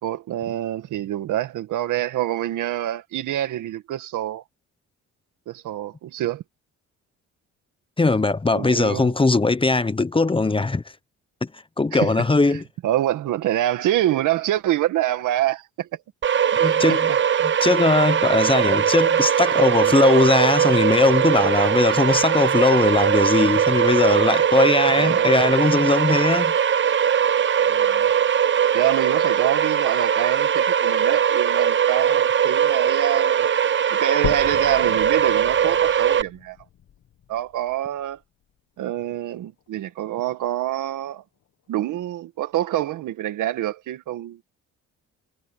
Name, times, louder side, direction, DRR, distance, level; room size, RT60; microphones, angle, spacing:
voice 1, 0.0-4.4 5.5-6.4 8.5-9.1 11.9-12.1 12.8-15.9 16.5-17.2 25.0-25.3 27.7-28.1 28.7-33.5 33.9-36.6 37.3-38.2 38.8-41.2 41.7-44.4, right 13 dB, 85° right, 2.0 m, -26 dB
voice 2, 8.0-10.8 11.4-12.6 16.6-17.1 17.4-26.5, left 3 dB, 15° left, 1.0 m, -20 dB
sound 1, 16.2-36.2, right 8 dB, 40° right, 0.8 m, -20 dB
sound 2, 34.2-38.2 38.8-38.9 39.5-39.6 39.9-40.0 40.8-40.9, left 10 dB, 60° left, 1.7 m, -36 dB
cardioid pair, 90°, 30 cm